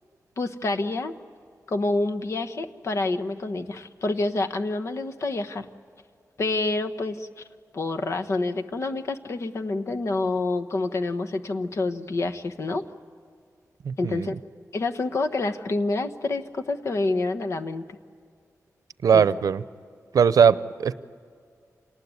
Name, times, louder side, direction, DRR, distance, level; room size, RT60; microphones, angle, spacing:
voice 1, 0.4-1.1 1.7-5.7 6.4-7.3 7.7-12.8 14.0-14.3 14.7-17.8 19.1-19.2, left 2 dB, 55° left, 7 dB, 1.2 m, -27 dB
voice 2, 13.8-14.3 19.0-19.6 20.1-20.9, right 7 dB, 80° right, 15 dB, 0.7 m, -20 dB
27.5 x 19.0 x 9.7 m, 2.2 s
wide cardioid pair, 165°, 6 cm